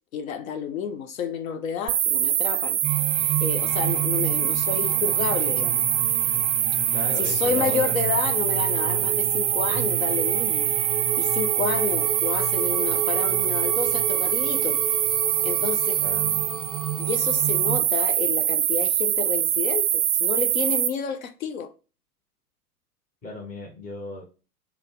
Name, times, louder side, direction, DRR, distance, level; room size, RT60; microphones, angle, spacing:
voice 1, 0.1-2.8 3.4-5.8 7.2-10.7 11.2-14.8 15.4-16.0 17.0-21.7, left 7 dB, 60° left, 0.6 m, -30 dB
sound 1, 1.9-20.9, right 11 dB, 35° right, 0.5 m, -24 dB
sound 2, 2.8-17.8, right 6 dB, 10° right, 0.8 m, -32 dB
voice 2, 6.9-7.9 16.0-16.5 23.2-24.2, left 2 dB, 20° left, 1.0 m, -36 dB
3.9 x 2.2 x 3.5 m
figure-of-eight pair, 95°, 46 cm